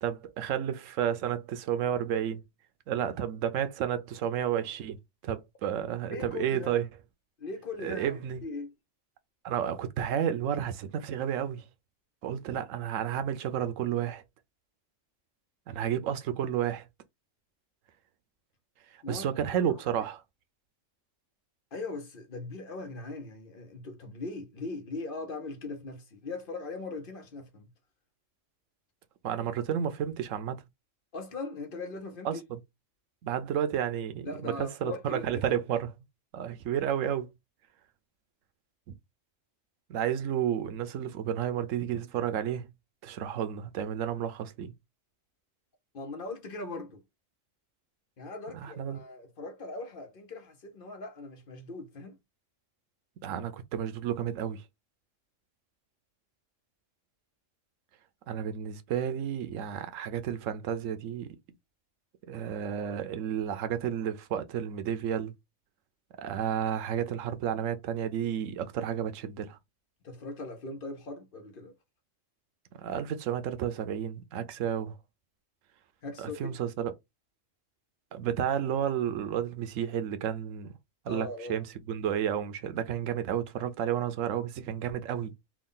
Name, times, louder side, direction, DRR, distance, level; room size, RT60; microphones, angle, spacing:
voice 1, 0.0-2.4 2.9-5.0 5.2-6.8 7.8-8.4 9.4-11.6 12.2-14.2 15.7-16.9 19.1-20.2 29.2-30.6 32.2-32.6 33.2-35.9 36.3-37.3 38.9-39.0 39.9-42.7 43.0-44.7 48.5-49.0 53.2-54.6 58.3-61.4 62.3-65.3 66.2-69.6 72.7-75.0 76.2-76.9 78.1-80.8 81.1-85.3, right 9 dB, 90° right, 1.0 m, -31 dB
voice 2, 6.1-6.8 7.4-8.7 19.0-19.6 21.7-27.7 31.1-32.4 34.2-35.4 45.9-47.0 48.2-52.2 70.0-71.7 76.0-76.6 81.1-81.7, left 3 dB, 50° left, 0.8 m, -40 dB
3.6 x 2.3 x 3.7 m
omnidirectional pair, 1.3 m